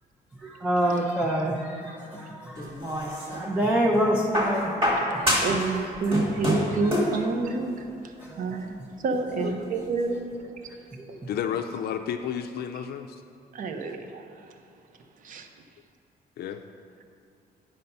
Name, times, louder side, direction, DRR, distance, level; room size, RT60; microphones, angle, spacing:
voice 1, 0.4-5.5 5.7-5.8 8.2-8.4 11.0-11.2, equal, 10° right, -1 dB, 0.5 m, -27 dB
sound 1, 2.6-3.5 4.3-5.7 5.9-7.2 8.3-8.4, equal, 30° right, 1.8 m, -26 dB
voice 2, 5.4-10.5 11.2-11.4 13.5-14.3 15.2-15.5, right 3 dB, 50° right, 6 dB, 0.7 m, -29 dB
voice 3, 11.3-13.2 16.4-16.6, left 8 dB, 70° left, 6 dB, 0.4 m, -31 dB
8.9 x 5.7 x 5.3 m, 2.6 s
cardioid pair, 165°, 17 cm